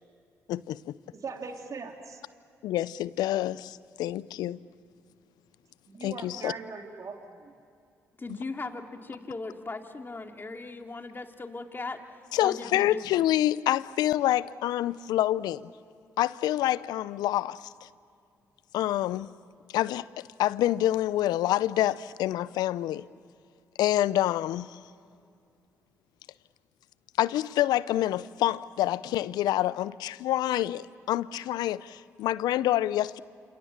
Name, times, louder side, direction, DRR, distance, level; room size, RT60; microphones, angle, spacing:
voice 1, 0.5-0.9 2.6-4.6 6.0-6.5 12.3-15.7 16.2-17.9 18.7-19.3 19.7-23.0 23.8-24.8 27.2-33.2, left 13 dB, 75° left, 0.6 m, -27 dB
voice 2, 1.1-2.2 5.9-7.5, right 4 dB, 50° right, 3.7 m, -40 dB
voice 3, 8.2-13.2, left 3 dB, 30° left, 2.8 m, -38 dB
29.0 x 27.5 x 7.4 m
hypercardioid pair, 45°, 7 cm